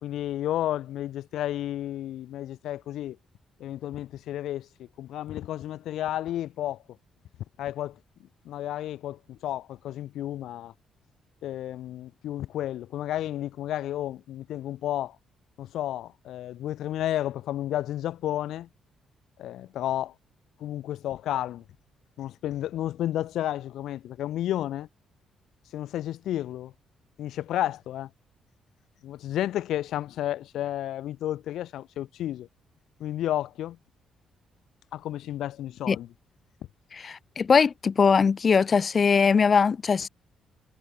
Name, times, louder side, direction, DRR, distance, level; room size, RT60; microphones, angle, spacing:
voice 1, 0.0-3.2 3.6-6.8 7.6-8.0 8.5-10.7 11.4-15.2 15.6-18.7 19.4-20.1 20.6-21.6 22.2-24.9 25.7-26.7 27.2-28.1 29.0-32.5 33.0-33.8 34.9-36.1, left 12 dB, 80° left, 3.4 m, -32 dB
voice 2, 36.9-40.1, left 5 dB, 40° left, 1.4 m, -21 dB
cardioid pair, 90°, 0 cm